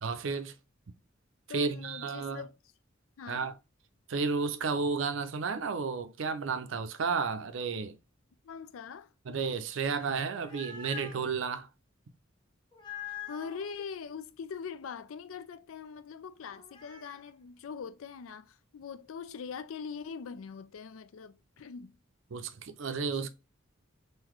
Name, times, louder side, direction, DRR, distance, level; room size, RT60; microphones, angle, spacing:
voice 1, 0.0-0.5 1.5-2.4 3.3-3.5 4.1-8.0 9.3-11.7 22.3-23.3, right 5 dB, 70° right, 0.5 m, -32 dB
voice 2, 1.5-2.6 3.2-3.5 8.4-9.1 13.1-22.0 23.1-23.3, left 6 dB, 85° left, 0.4 m, -42 dB
sound 1, 10.2-11.3 12.7-13.7 16.5-17.2, left 6 dB, 25° left, 0.7 m, -44 dB
3.9 x 2.6 x 3.0 m
head